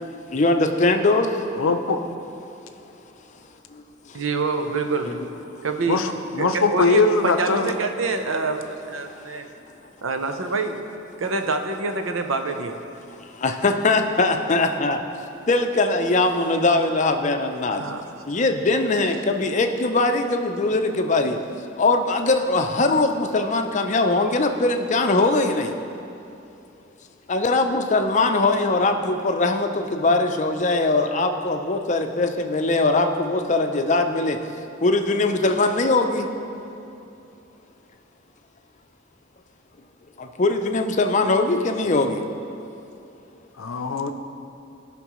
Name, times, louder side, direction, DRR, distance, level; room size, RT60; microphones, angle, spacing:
voice 1, 0.3-1.4 3.7-4.2 5.1-5.2 9.1-9.3 13.4-15.0 15.5-17.8 18.3-21.4 21.8-25.7 27.3-34.4 34.8-36.3 40.2-42.2, left 2 dB, 35° left, 6 dB, 0.5 m, -21 dB
voice 2, 1.6-2.0 5.9-7.7 43.6-44.1, left 3 dB, 80° left, 7 dB, 0.6 m, -21 dB
voice 3, 4.1-5.2 5.6-6.0 6.4-9.5 10.0-10.8 11.2-12.8 17.8-18.0 19.0-19.1, right 4 dB, 75° right, 6 dB, 0.7 m, -26 dB
16.5 x 5.9 x 3.1 m, 2.8 s
head